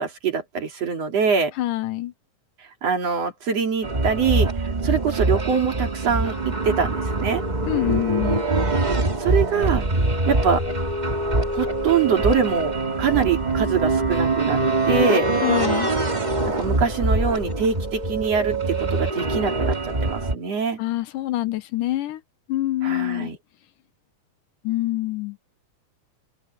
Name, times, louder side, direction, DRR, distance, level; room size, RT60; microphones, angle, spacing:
voice 1, 0.0-1.5 2.8-4.5 4.8-7.4 9.2-9.8 10.3-10.6 11.5-14.6 14.9-15.3 16.5-20.8 22.8-23.4, right 6 dB, 50° right, 3.6 m, -24 dB
voice 2, 1.6-2.1 7.7-8.4 15.4-15.9 20.8-22.2 22.5-23.3 24.6-25.4, left 15 dB, 80° left, 2.5 m, -25 dB
sound 1, 3.8-20.3, right 2 dB, 15° right, 1.6 m, -23 dB
omnidirectional pair, 3.8 m